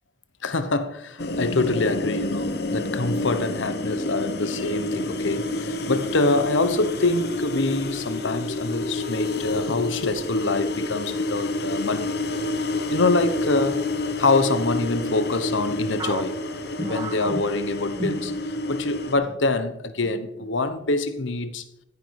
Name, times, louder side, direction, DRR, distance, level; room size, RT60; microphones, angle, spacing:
voice 1, 0.4-12.1 12.9-13.8 14.2-16.4 16.8-18.3 18.7-21.6, left 3 dB, 75° left, 1.1 m, -25 dB
sound 1, 1.2-19.1, left 2 dB, 55° left, 1.1 m, -29 dB
sound 2, 16.0-18.8 19.2-19.4 20.0-20.5, right 2 dB, 20° right, 0.6 m, -34 dB
14.5 x 9.7 x 4.9 m
head